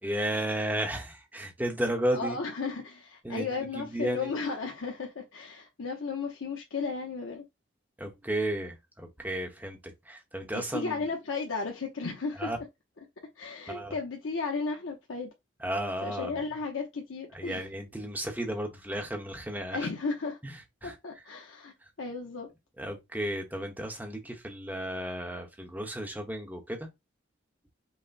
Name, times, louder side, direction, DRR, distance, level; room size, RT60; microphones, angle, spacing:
voice 1, 0.0-2.4 3.2-4.3 8.0-11.1 12.4-12.6 13.7-14.0 15.6-16.4 17.3-19.9 20.4-21.0 21.8-21.9 22.8-26.9, right 1 dB, 10° right, 0.9 m, -33 dB
voice 2, 2.1-7.4 10.5-12.5 13.4-15.3 16.0-17.7 19.7-20.4 20.8-22.5, left 4 dB, 85° left, 0.8 m, -34 dB
5.6 x 2.1 x 4.0 m
head